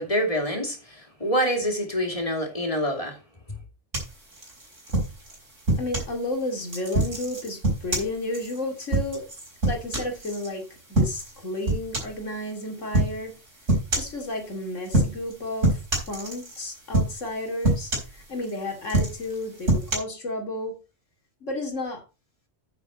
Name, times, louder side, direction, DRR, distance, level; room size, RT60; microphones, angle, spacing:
voice 1, 0.0-3.2, equal, 30° left, 2.8 m, -26 dB
sound 1, 3.9-6.1 6.7-10.5 10.9-11.4 11.7-12.2 12.9-13.2 13.7-14.2 14.9-15.3 15.6-16.6 16.9-17.3 17.6-18.5 18.8-20.0, right 2 dB, 80° right, 4.6 m, -25 dB
voice 2, 5.8-9.2 9.7-10.6 10.9-13.3 13.9-15.8 16.1-17.9 18.3-20.8 21.4-22.0, left 1 dB, 85° left, 3.0 m, -32 dB
9.4 x 8.2 x 4.1 m
omnidirectional pair, 1.3 m